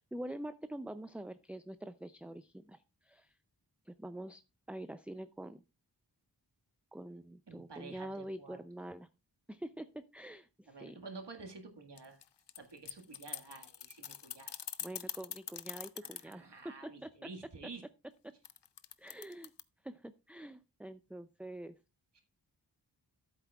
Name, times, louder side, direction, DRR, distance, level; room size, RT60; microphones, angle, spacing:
voice 1, 0.0-3.3 3.9-4.4 4.7-5.6 6.9-9.1 9.5-11.0 14.8-16.7 17.0-17.1 18.2-18.3 19.0-19.5 19.8-21.8, right 1 dB, 5° right, 12 dB, 0.4 m, -45 dB
voice 2, 7.5-8.6 10.7-12.2 12.6-14.5 16.0-17.8 22.1-22.2, right 3 dB, 85° right, 5 dB, 1.8 m, -50 dB
sound 1, 12.0-16.3 18.4-19.6, left 9 dB, 85° left, 0.6 m, -43 dB
14.0 x 8.2 x 2.3 m, 0.29 s
wide cardioid pair, 50°, 41 cm